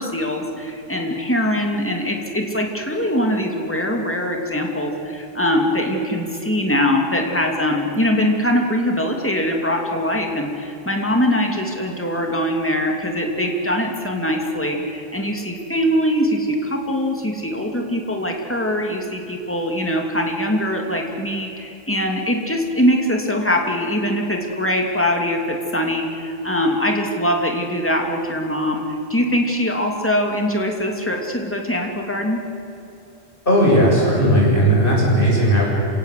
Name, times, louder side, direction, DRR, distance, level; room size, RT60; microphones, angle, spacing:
voice 1, 0.0-28.8 29.1-32.4, equal, 10° left, 2 dB, 2.7 m, -22 dB
voice 2, 33.5-35.7, equal, 45° left, -4 dB, 7.6 m, -16 dB
27.5 x 17.5 x 8.4 m, 3.0 s
omnidirectional pair, 1.3 m